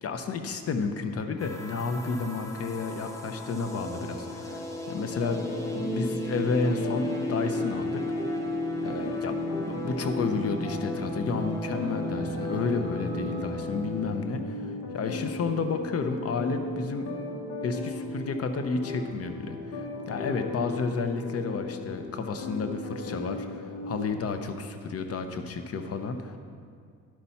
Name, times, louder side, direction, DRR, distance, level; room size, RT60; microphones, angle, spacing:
voice 1, 0.0-5.4 5.7-8.1 8.8-17.1 17.6-26.4, left 4 dB, 50° left, 7 dB, 0.7 m, -31 dB
sound 1, 1.4-14.2, left 1 dB, 10° left, 1.1 m, -35 dB
sound 2, 3.6-6.1 6.5-9.2 9.8-13.5, right 2 dB, 30° right, 1.5 m, -45 dB
sound 3, 5.2-24.0, left 2 dB, 70° left, 1.3 m, -37 dB
11.5 x 5.6 x 4.2 m, 2.2 s
cardioid pair, 90°, 30 cm